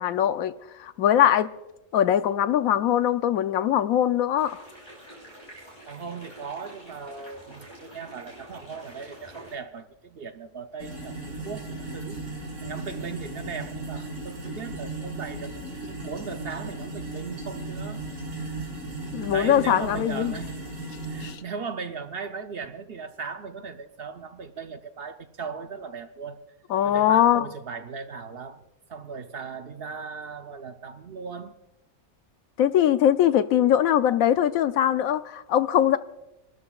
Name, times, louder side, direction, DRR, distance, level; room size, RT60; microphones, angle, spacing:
voice 1, 0.0-1.5 1.9-4.6 19.1-20.3 21.2-21.4 26.7-27.5 32.6-36.0, left 10 dB, 90° left, 1.1 m, -21 dB
sound 1, 4.4-9.5, equal, 35° left, 6.1 m, -47 dB
voice 2, 5.9-12.2 12.6-18.7 19.3-20.6 21.1-26.4 26.8-28.6 28.9-31.6, right 5 dB, 55° right, 0.8 m, -38 dB
sound 2, 10.8-21.4, right 2 dB, 80° right, 3.3 m, -36 dB
28.0 x 12.5 x 2.4 m
omnidirectional pair, 1.4 m